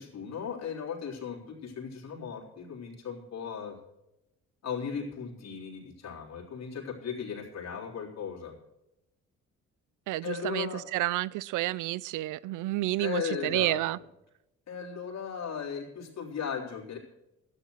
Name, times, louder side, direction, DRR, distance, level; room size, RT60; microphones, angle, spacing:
voice 1, 0.0-3.8 4.6-8.5 10.2-10.8 13.0-13.8 14.7-17.0, left 7 dB, 60° left, 3.6 m, -37 dB
voice 2, 10.1-14.0, right 17 dB, 85° right, 0.5 m, -30 dB
12.5 x 9.9 x 6.3 m
cardioid pair, 90°, 30 cm